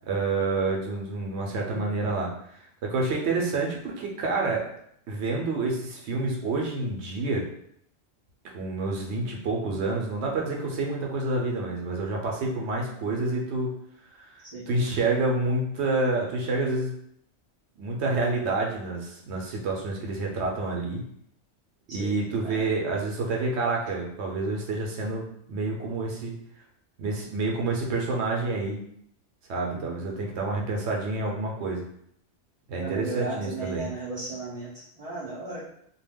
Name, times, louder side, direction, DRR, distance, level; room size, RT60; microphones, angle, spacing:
voice 1, 0.1-2.6 2.8-4.6 5.1-7.5 8.5-13.7 14.2-16.9 17.8-21.0 21.9-26.3 27.0-28.8 29.5-31.8 32.7-33.9, right 3 dB, 70° right, -1 dB, 0.8 m, -28 dB
voice 2, 29.7-30.0 32.8-35.6, right 3 dB, 50° right, -6 dB, 0.5 m, -36 dB
2.2 x 2.2 x 3.4 m, 0.69 s
omnidirectional pair, 1.2 m